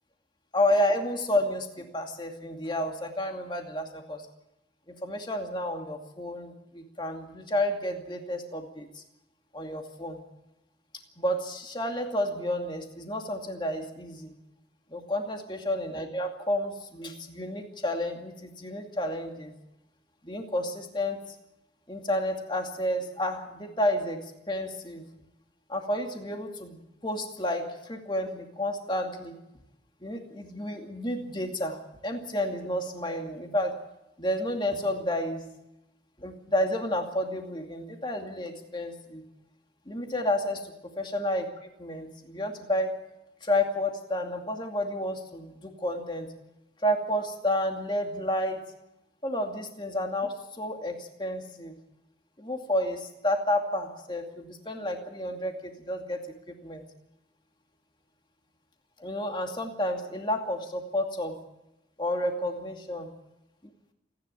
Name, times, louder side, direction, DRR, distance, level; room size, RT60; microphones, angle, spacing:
voice 1, 0.5-4.2 4.9-9.0 9.5-10.2 11.2-14.3 14.9-19.5 20.2-21.2 21.9-25.1 25.7-29.4 30.0-33.7 34.2-35.5 36.2-39.2 39.9-42.9 43.4-46.3 46.8-48.6 49.2-51.8 52.4-56.8 59.0-61.4 62.0-63.1, left 1 dB, 25° left, 4 dB, 2.4 m, -31 dB
28.5 x 11.0 x 8.4 m, 0.90 s
head